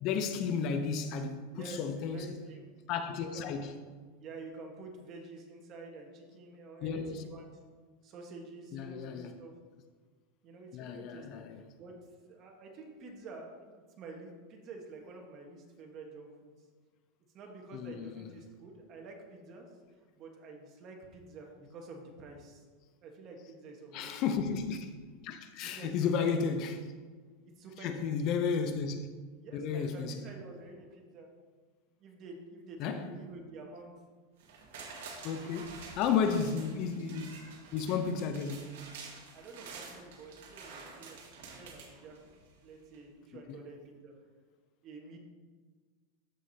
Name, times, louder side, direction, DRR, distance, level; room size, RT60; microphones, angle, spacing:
voice 1, 0.0-2.3 2.9-3.7 6.8-7.2 8.7-9.4 10.7-11.6 17.7-18.3 23.9-24.9 25.2-26.9 27.8-29.1 29.5-30.2 32.8-33.1 35.2-37.5 37.7-38.7 43.5-43.6, left 6 dB, 40° left, 0.5 m, -33 dB
voice 2, 1.5-2.7 3.2-3.6 4.2-7.5 8.0-9.5 10.4-11.4 11.8-11.9 12.3-16.5 17.3-19.7 20.2-22.6 23.0-24.3 25.6-26.5 27.6-28.2 29.4-31.3 32.0-33.9 36.3-36.5 39.3-41.2 41.5-42.2 42.6-44.1 44.8-45.2, right 3 dB, 35° right, 1.3 m, -48 dB
sound 1, 34.4-42.6 42.9-43.0, right 4 dB, 85° right, 1.7 m, -49 dB
13.0 x 4.8 x 2.8 m
supercardioid pair, 150°, 0 cm